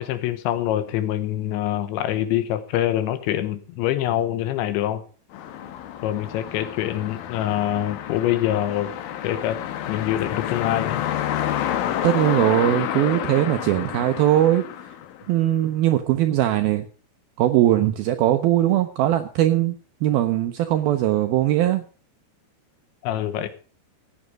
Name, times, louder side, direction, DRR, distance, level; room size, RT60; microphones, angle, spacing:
voice 1, 0.0-5.0 6.0-8.9 9.2-9.6 9.9-11.0 23.0-23.5, left 12 dB, 90° left, 12 dB, 3.5 m, -25 dB
sound 1, 5.3-15.6, left 11 dB, 70° left, 2.4 m, -29 dB
voice 2, 12.0-14.6 15.3-16.9 17.4-21.8, right 13 dB, 80° right, 8 dB, 2.2 m, -20 dB
14.5 x 9.4 x 5.1 m, 0.38 s
omnidirectional pair, 5.2 m